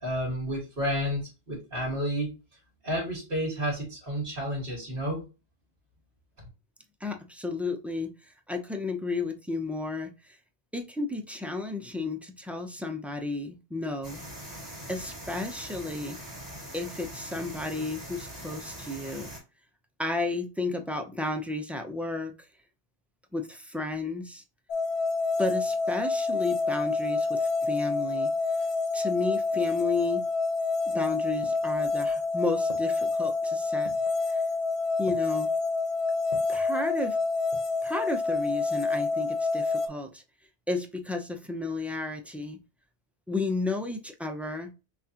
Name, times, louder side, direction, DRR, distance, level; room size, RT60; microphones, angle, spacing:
voice 1, 0.0-2.3 2.8-5.2, equal, 55° right, -5 dB, 1.8 m, -31 dB
voice 2, 7.0-10.4 10.7-14.2 14.9-16.2 16.7-19.3 20.0-22.3 23.3-24.4 25.4-28.3 28.9-30.2 30.9-33.9 34.3-34.4 35.0-35.5 36.5-37.2 37.8-40.2 40.7-42.6 43.3-44.7, left 3 dB, ahead, 3 dB, 0.3 m, -32 dB
sound 1, 14.0-19.4, equal, 20° right, 2.2 m, -42 dB
sound 2, 24.7-39.9, left 3 dB, 80° left, 0.9 m, -28 dB
sound 3, 30.9-32.2 32.7-33.2 33.8-34.3 35.1-35.5 36.3-36.7 37.3-37.9 38.1-38.2, left 1 dB, 40° left, 0.9 m, -46 dB
5.8 x 2.5 x 2.8 m, 0.29 s
omnidirectional pair, 1.1 m